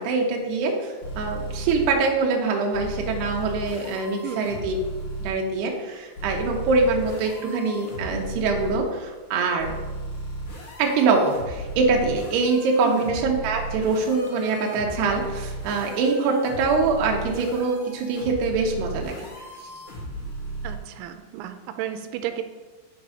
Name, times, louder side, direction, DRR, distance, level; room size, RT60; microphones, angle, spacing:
voice 1, 0.0-4.8 5.2-9.7 10.8-19.3, right 4 dB, 70° right, 1 dB, 3.0 m, -24 dB
sound 1, 1.0-1.9 2.7-5.3 6.2-8.8 9.6-20.8, right 2 dB, 45° left, 2.2 m, -35 dB
voice 2, 4.2-4.6 12.8-13.1 20.6-22.4, right 11 dB, 90° right, 8 dB, 3.0 m, -33 dB
10.5 x 4.7 x 5.1 m, 1.3 s
omnidirectional pair, 5.4 m